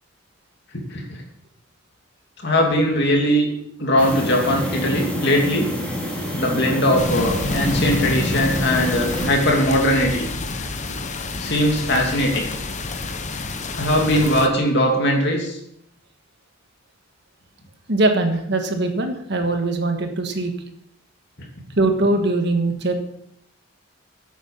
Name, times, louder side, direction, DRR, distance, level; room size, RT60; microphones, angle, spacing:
voice 1, 0.7-1.2 2.4-3.5 3.8-5.7 6.4-10.2 10.9-11.0 11.4-12.5 13.8-15.6, equal, 55° left, 1 dB, 2.7 m, -20 dB
sound 1, 4.0-9.3, equal, 5° left, 2.7 m, -27 dB
sound 2, 7.0-14.5, left 2 dB, 35° left, 0.9 m, -28 dB
voice 2, 17.9-20.5 21.8-22.9, right 2 dB, 55° right, 5 dB, 1.5 m, -21 dB
10.0 x 8.8 x 5.6 m, 0.74 s
head